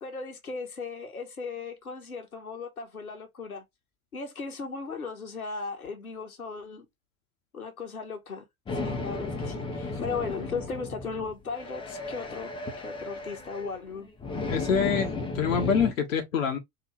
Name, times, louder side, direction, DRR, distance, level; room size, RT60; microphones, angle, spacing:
voice 1, 0.0-3.6 4.1-6.9 7.5-12.5 12.8-14.1, left 4 dB, 80° left, 1.2 m, -37 dB
sound 1, 8.7-15.9, left 3 dB, 10° left, 0.7 m, -34 dB
voice 2, 14.5-15.1 15.3-16.6, left 6 dB, 65° left, 1.0 m, -25 dB
3.7 x 2.6 x 3.2 m
figure-of-eight pair, 85°, 43 cm